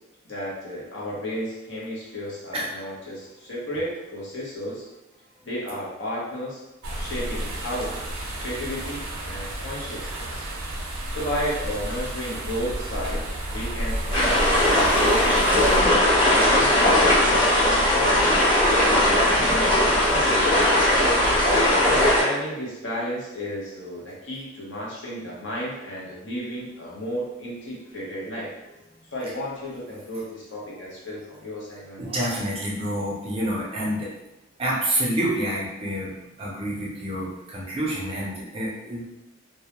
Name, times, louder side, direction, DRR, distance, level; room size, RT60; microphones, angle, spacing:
voice 1, 0.2-4.8 5.4-6.6 7.0-7.9 8.4-10.4 11.1-16.7 17.3-18.4 18.9-20.8 21.2-28.5 29.1-32.0, equal, 60° left, -6 dB, 0.7 m, -33 dB
sound 1, 6.8-15.8, right 1 dB, 90° right, 0.5 m, -32 dB
sound 2, 14.1-22.2, left 1 dB, 20° left, 0.9 m, -19 dB
voice 2, 32.0-34.1 34.6-36.1 36.4-39.0, right 1 dB, 25° right, -4 dB, 0.4 m, -28 dB
2.2 x 2.1 x 2.8 m, 0.97 s
head